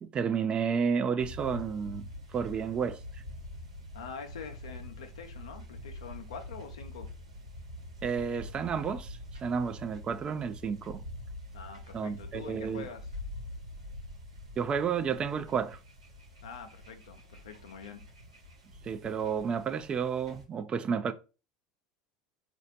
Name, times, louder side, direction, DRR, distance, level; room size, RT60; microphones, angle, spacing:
voice 1, 0.0-3.0 8.0-11.0 11.9-12.9 14.6-15.8 18.8-21.1, right 6 dB, 35° right, 0.5 m, -31 dB
sound 1, 1.2-20.4, left 1 dB, 90° right, 1.1 m, -45 dB
voice 2, 3.9-7.1 11.5-13.1 16.4-18.0, left 6 dB, 75° left, 0.7 m, -45 dB
4.1 x 2.6 x 3.9 m
hypercardioid pair, 75°, 3 cm